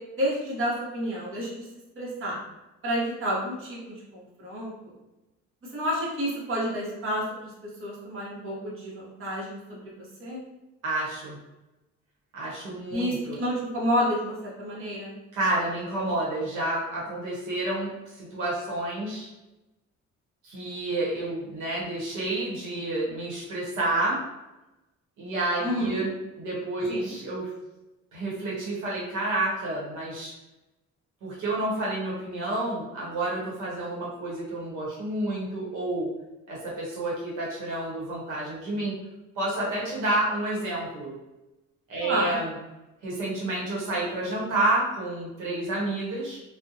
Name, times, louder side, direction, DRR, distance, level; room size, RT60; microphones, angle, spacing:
voice 1, 0.2-1.7 2.0-2.4 2.8-3.8 4.1-4.7 5.7-7.5 7.8-9.8 10.2-10.4 12.9-15.2 25.6-26.0 26.9-27.1 42.0-42.3, equal, 45° right, -5 dB, 1.0 m, -29 dB
voice 2, 10.8-11.4 12.3-13.4 15.3-19.3 20.4-24.2 25.2-27.5 28.1-30.3 31.2-36.1 36.5-39.0 39.3-41.1 41.9-42.5 43.0-46.4, right 2 dB, 85° right, -5 dB, 0.9 m, -29 dB
2.5 x 2.1 x 2.6 m, 1.0 s
cardioid pair, 90°, 30 cm